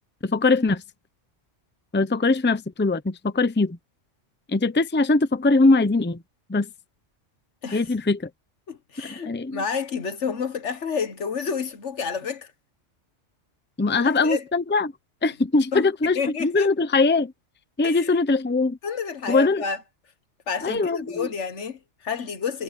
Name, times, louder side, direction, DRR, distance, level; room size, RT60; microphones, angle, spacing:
voice 1, 0.2-0.8 1.9-3.8 4.5-6.2 6.5-6.7 7.7-8.3 9.2-9.6 13.8-14.9 15.2-17.3 17.8-18.8 19.3-19.6 20.6-21.3, left 3 dB, 10° left, 0.7 m, -21 dB
voice 2, 8.7-12.5 13.9-14.5 15.7-16.7 17.8-18.2 18.8-19.8 20.5-22.6, left 6 dB, 70° left, 1.6 m, -30 dB
omnidirectional pair, 1.2 m